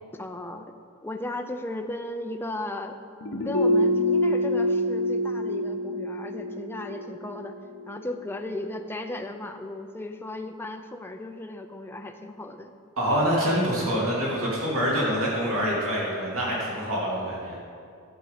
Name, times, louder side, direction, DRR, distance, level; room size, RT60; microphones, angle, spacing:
voice 1, 0.1-0.7 1.0-3.0 3.4-7.5 7.9-12.7, left 1 dB, 10° left, 5 dB, 0.5 m, -35 dB
sound 1, 3.2-8.4 8.7-8.8, left 1 dB, 75° left, 1.1 m, -26 dB
voice 2, 13.0-17.6, equal, 70° right, -5 dB, 2.5 m, -26 dB
11.0 x 7.6 x 5.1 m, 2.4 s
head